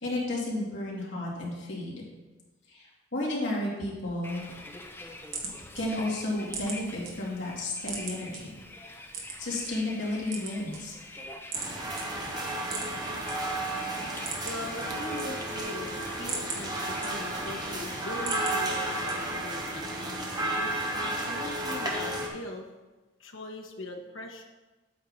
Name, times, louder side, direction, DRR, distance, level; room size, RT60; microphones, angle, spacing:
voice 1, 0.0-2.0 2.7-4.4 5.7-8.5 9.4-11.0, left 1 dB, 65° left, -5 dB, 2.5 m, -32 dB
Bus, 4.2-19.2, left 2 dB, 10° left, 0.6 m, -46 dB
sound 1, 4.9-7.1 7.5-8.4 9.1-9.7 10.2-11.1 11.5-11.7 12.0-12.1 12.6-13.3 13.7-13.8 14.1-14.7 15.0-15.7 16.1-17.5 17.9-18.6 19.1-19.5, right 5 dB, 80° right, 1.5 m, -38 dB
sound 2, 11.5-22.3, right 1 dB, 20° right, 1.0 m, -33 dB
voice 2, 14.1-22.7 23.2-24.4, left 1 dB, 85° left, 2 dB, 1.0 m, -41 dB
8.6 x 3.9 x 6.3 m, 1.1 s
head